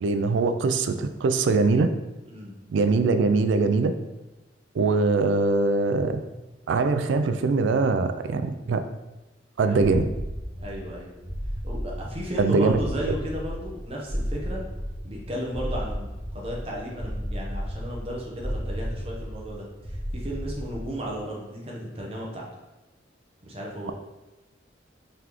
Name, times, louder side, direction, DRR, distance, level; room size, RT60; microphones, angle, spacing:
voice 1, 0.0-1.9 2.7-3.9 4.7-6.2 6.7-8.8 9.6-10.0 12.4-12.8, right 3 dB, 80° right, 9 dB, 0.3 m, -22 dB
voice 2, 2.3-2.6 9.6-9.9 10.6-11.1 11.6-14.6 15.0-22.5 23.4-23.9, equal, 30° right, -2 dB, 0.8 m, -34 dB
sound 1, 9.8-21.2, equal, 15° left, 1.2 m, -33 dB
3.9 x 3.4 x 3.0 m, 1.1 s
head